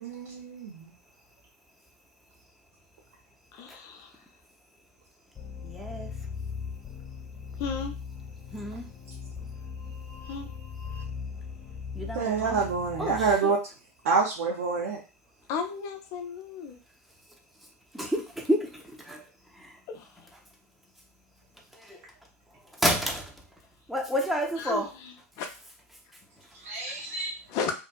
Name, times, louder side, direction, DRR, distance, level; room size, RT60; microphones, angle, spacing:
voice 1, 0.0-0.9 12.1-13.6 14.0-15.0 26.6-27.3, right 5 dB, 70° right, -1 dB, 0.6 m, -27 dB
voice 2, 3.5-4.2 7.6-7.9 10.3-10.5 15.5-16.8 19.9-20.1 24.6-25.5 27.5-27.7, left 5 dB, 45° left, 5 dB, 0.6 m, -34 dB
sound 1, 5.3-13.4, left 6 dB, 25° left, 1.0 m, -39 dB
voice 3, 5.6-6.1 8.5-8.8 11.9-12.6 13.0-13.5 17.9-19.2 19.6-19.7 21.8-22.0 22.8-23.3 23.9-24.9, equal, ahead, 0 dB, 0.6 m, -30 dB
2.7 x 2.4 x 2.2 m, 0.32 s
hypercardioid pair, 95°, 8 cm